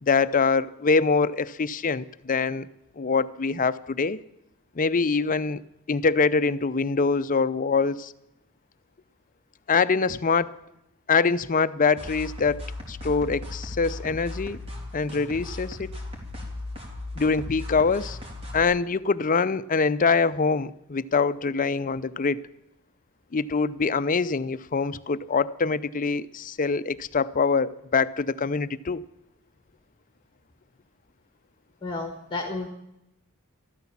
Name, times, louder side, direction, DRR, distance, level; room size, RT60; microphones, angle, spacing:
voice 1, 0.0-2.7 3.0-4.2 4.8-5.6 5.9-8.1 9.7-10.5 11.1-14.6 14.9-15.9 17.2-18.2 18.5-22.4 23.3-29.0, left 4 dB, 40° left, 0.6 m, -24 dB
sound 1, 12.0-18.6, left 2 dB, 25° right, 3.5 m, -37 dB
voice 2, 31.8-32.7, left 2 dB, 20° left, 1.6 m, -32 dB
13.5 x 13.5 x 7.3 m
head